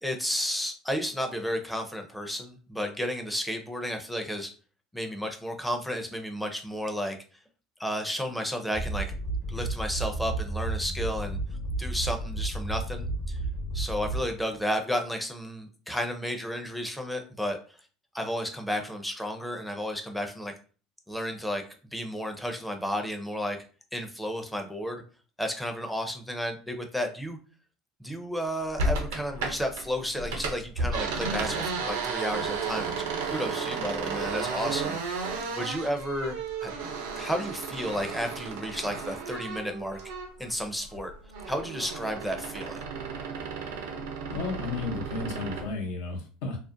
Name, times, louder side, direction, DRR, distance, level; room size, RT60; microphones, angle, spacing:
voice 1, 0.0-4.5 4.9-7.2 7.8-9.1 9.5-11.4 11.8-13.4 13.7-17.6 18.1-20.5 21.1-21.6 21.9-23.6 23.9-25.0 25.4-27.4 28.0-32.9 33.3-36.8 37.2-40.0 40.4-41.1 41.5-42.8, equal, 5° left, 4 dB, 0.5 m, -32 dB
sound 1, 8.7-14.5, right 2 dB, 40° left, 0.7 m, -32 dB
sound 2, 28.8-29.8 30.1-40.5 40.8-45.7, right 4 dB, 85° right, 0.5 m, -33 dB
voice 2, 44.3-46.6, left 3 dB, 75° left, 2 dB, 0.7 m, -33 dB
2.4 x 2.1 x 2.5 m, 0.38 s
supercardioid pair, 95°, 0 cm